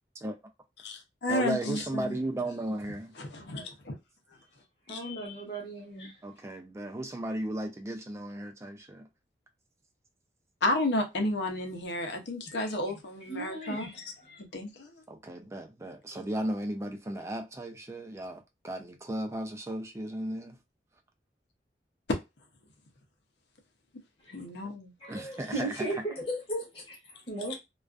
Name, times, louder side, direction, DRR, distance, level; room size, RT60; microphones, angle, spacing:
voice 1, 0.8-2.2 3.1-4.0 4.9-5.0 10.6-14.1 14.5-14.9 24.3-24.9, left 1 dB, 80° left, 0.6 m, -32 dB
voice 2, 1.3-3.1 6.2-9.0 15.1-20.6 24.6-24.7 25.1-25.7, right 1 dB, 15° right, 0.3 m, -35 dB
voice 3, 4.9-6.1 12.5-14.4 24.2-24.4 25.0-27.6, right 1 dB, 30° left, 0.8 m, -37 dB
2.4 x 2.3 x 2.3 m
head